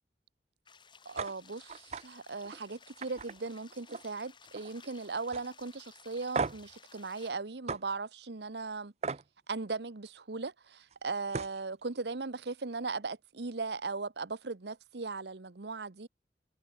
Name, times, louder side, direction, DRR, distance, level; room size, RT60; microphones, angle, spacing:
sound 1, 0.7-7.3, left 5 dB, 25° left, 5.1 m, -58 dB
voice 1, 1.0-8.9 9.5-16.1, right 3 dB, 70° right, 1.0 m, -38 dB
sound 2, 1.2-1.3 1.7-2.0 2.4-2.6 3.0-4.2 4.5-4.9 5.3-5.4 6.3-6.7 7.7-7.8 9.0-9.2 10.9-11.0 11.3-11.6, right 4 dB, 35° right, 0.5 m, -36 dB
head